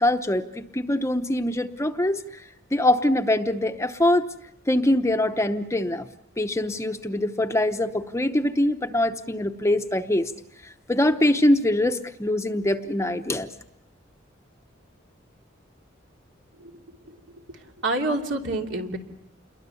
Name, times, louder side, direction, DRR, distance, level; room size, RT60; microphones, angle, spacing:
voice 1, 0.0-2.4 2.7-4.3 4.7-6.1 6.4-10.3 10.6-13.5, left 1 dB, 15° left, 8 dB, 0.9 m, -23 dB
voice 2, 17.8-19.0, right 2 dB, 65° right, 2 dB, 2.9 m, -27 dB
28.5 x 22.0 x 7.0 m, 0.82 s
head